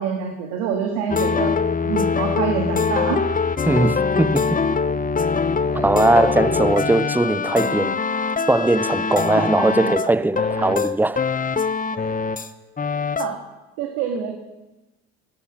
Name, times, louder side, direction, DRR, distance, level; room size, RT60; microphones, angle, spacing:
voice 1, 0.0-1.5 1.8-3.2 5.7-5.9 9.3-9.5 10.6-10.7 11.9-12.1 13.2-13.3 13.8-14.4, right 7 dB, 75° right, 1.8 m, -26 dB
sound 1, 1.1-12.5 12.8-13.4, left 5 dB, 20° left, 0.8 m, -23 dB
voice 2, 3.7-4.6 5.8-8.0 8.5-11.2, right 2 dB, 5° right, 0.5 m, -19 dB
18.0 x 9.4 x 6.3 m
hypercardioid pair, 55°, 38 cm